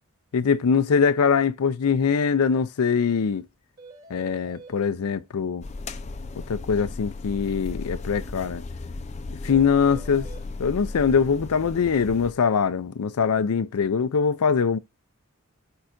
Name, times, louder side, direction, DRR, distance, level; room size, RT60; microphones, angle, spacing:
voice 1, 0.3-3.4 4.1-5.6 6.5-8.6 9.4-10.3 10.6-14.8, left 6 dB, 85° left, 0.5 m, -22 dB
sound 1, 2.5-2.6 2.9-3.0 3.3-3.4 3.8-4.8 9.5-10.5, right 2 dB, 40° right, 2.6 m, -47 dB
sound 2, 5.6-12.3, left 3 dB, 30° left, 0.4 m, -36 dB
8.9 x 4.7 x 2.5 m
head